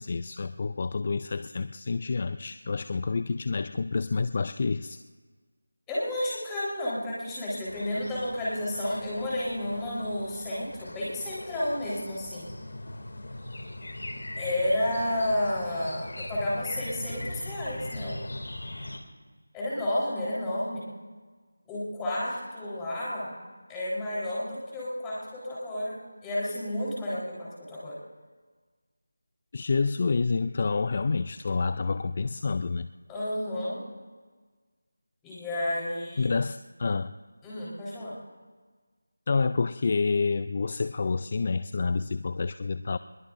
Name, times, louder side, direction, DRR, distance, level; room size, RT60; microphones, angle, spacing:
voice 1, 0.0-5.0 29.5-32.9 36.2-37.1 39.3-43.0, left 4 dB, 40° left, 13 dB, 0.4 m, -28 dB
voice 2, 5.9-12.5 14.4-18.3 19.5-20.9 21.7-23.4 23.7-28.0 33.1-33.8 35.2-36.4 37.4-38.2, left 1 dB, 10° left, -8 dB, 4.0 m, -31 dB
sound 1, 7.6-19.0, left 1 dB, 65° left, 2.5 m, -40 dB
22.5 x 21.5 x 2.6 m, 1.5 s
figure-of-eight pair, 170°, 0 cm